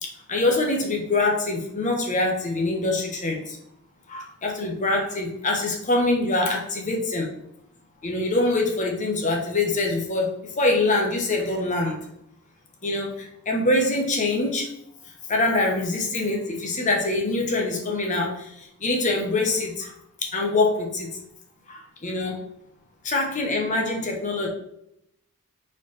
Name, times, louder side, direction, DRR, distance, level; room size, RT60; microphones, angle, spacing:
voice 1, 0.0-3.6 4.1-7.3 8.0-12.1 12.8-14.7 15.3-19.9 20.2-21.1 21.7-22.4 23.0-24.5, left 2 dB, 35° left, 1 dB, 1.1 m, -24 dB
5.7 x 4.6 x 4.1 m, 0.75 s
head